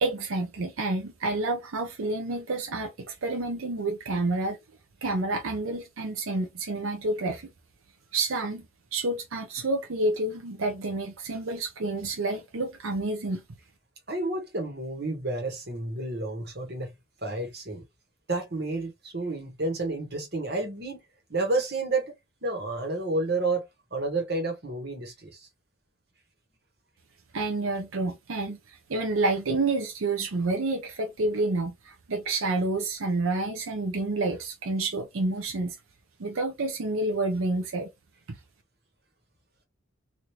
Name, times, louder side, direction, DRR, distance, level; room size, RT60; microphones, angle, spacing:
voice 1, 0.0-4.6 5.0-7.5 8.1-8.7 8.9-13.4 27.3-35.8 36.2-37.9, right 2 dB, 80° right, 0.6 m, -29 dB
voice 2, 14.1-16.9 17.2-17.8 18.3-21.0 21.3-22.1 22.4-23.6 23.9-25.5, right 2 dB, 50° right, 1.2 m, -30 dB
3.2 x 2.6 x 2.8 m
head